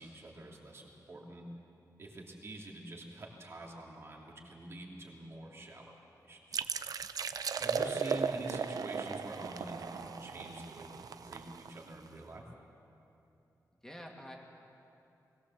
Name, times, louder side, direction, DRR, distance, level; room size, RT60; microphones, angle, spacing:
voice 1, 0.0-1.5 2.0-6.8 7.6-12.4, right 1 dB, 40° right, -1 dB, 2.8 m, -46 dB
sound 1, 6.5-12.1, right 6 dB, 65° right, 0.6 m, -36 dB
voice 2, 7.8-8.2 13.8-14.4, equal, 10° left, 0 dB, 2.2 m, -49 dB
20.5 x 18.5 x 7.3 m, 2.8 s
wide cardioid pair, 155°, 7 cm